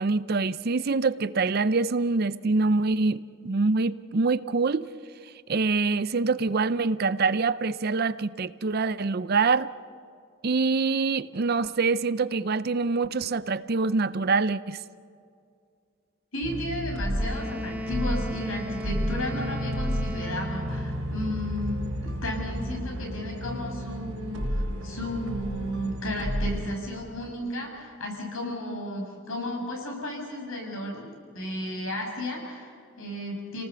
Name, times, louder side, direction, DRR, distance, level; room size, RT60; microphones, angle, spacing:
voice 1, 0.0-4.9 5.5-9.7 10.4-14.8, right 4 dB, 45° right, 15 dB, 0.5 m, -25 dB
voice 2, 16.3-31.1 31.3-33.6, left 1 dB, 70° left, 1 dB, 6.0 m, -34 dB
sound 1, 16.4-26.8, equal, 85° right, 4.4 m, -32 dB
Wind instrument woodwind instrument, 17.2-21.1, equal, 10° right, 1.0 m, -37 dB
29.5 x 19.0 x 6.9 m, 2.4 s
head